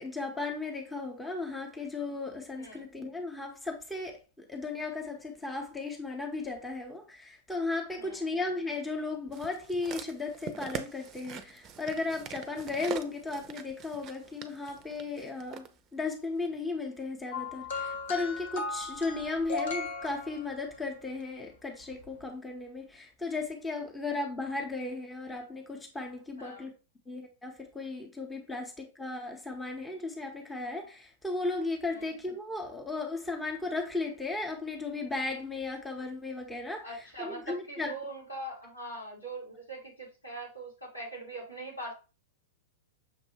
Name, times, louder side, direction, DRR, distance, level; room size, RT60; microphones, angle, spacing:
voice 1, 0.0-15.7 15.9-26.7 27.1-36.9 37.2-37.9, left 3 dB, 10° left, 0.9 m, -35 dB
voice 2, 8.0-8.3 26.4-26.7 28.5-28.6 31.9-32.2 36.8-41.9, right 2 dB, 90° left, 2.6 m, -42 dB
sound 1, 9.3-15.7 16.4-16.5, right 7 dB, 30° right, 0.5 m, -42 dB
sound 2, 17.3-20.9 21.9-22.1, left 4 dB, 65° left, 1.0 m, -37 dB
6.3 x 2.6 x 2.9 m
figure-of-eight pair, 100°, 0 cm